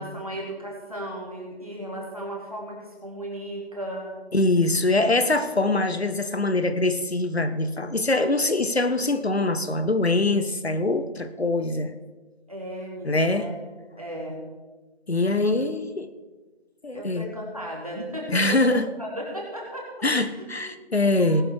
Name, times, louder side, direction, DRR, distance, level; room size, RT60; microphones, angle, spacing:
voice 1, 0.0-4.1 12.5-13.6 14.0-14.4 15.4-15.5 16.9-19.9 20.3-20.7 21.2-21.4, equal, 35° right, -3 dB, 2.8 m, -35 dB
voice 2, 4.3-11.9 13.0-13.5 15.1-16.1 16.8-17.3 18.3-18.9 20.0-21.4, left 2 dB, 70° left, 11 dB, 1.1 m, -23 dB
19.0 x 6.5 x 4.8 m, 1.2 s
figure-of-eight pair, 180°, 33 cm